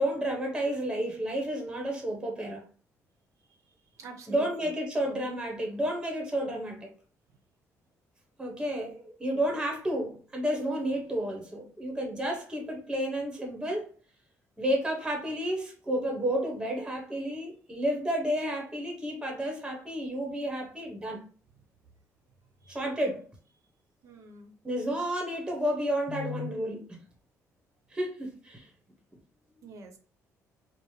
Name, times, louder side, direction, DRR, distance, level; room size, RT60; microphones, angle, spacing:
voice 1, 0.0-2.7 4.3-6.9 8.4-13.9 14.6-21.2 22.7-23.3 24.6-27.0 27.9-28.7, equal, 15° right, 0.9 m, -31 dB
voice 2, 3.9-4.7 22.6-22.8 24.0-24.5 29.6-30.0, right 4 dB, 60° right, 0.8 m, -46 dB
4.6 x 2.0 x 3.2 m
cardioid pair, 155°, 6 cm